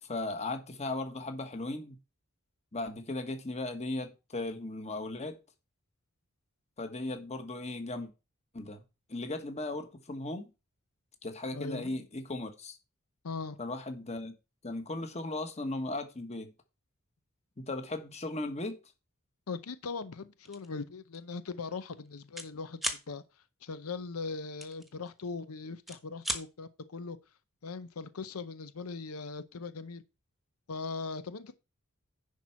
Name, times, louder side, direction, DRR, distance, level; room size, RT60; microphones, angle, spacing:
voice 1, 0.0-2.0 2.7-5.4 6.8-8.1 8.5-8.8 9.1-10.5 11.2-12.8 13.6-14.3 14.6-16.5 17.6-18.8, left 2 dB, 30° left, 1.4 m, -37 dB
voice 2, 11.5-12.0 13.2-13.6 19.5-23.2 23.6-27.2 27.6-30.0 30.7-31.5, left 4 dB, 90° left, 0.7 m, -40 dB
sound 1, 20.5-20.7 21.1-21.3 21.6-22.5 22.8-23.0 24.6-25.4 25.7-26.4, right 1 dB, ahead, 1.2 m, -36 dB
10.5 x 4.4 x 5.7 m
head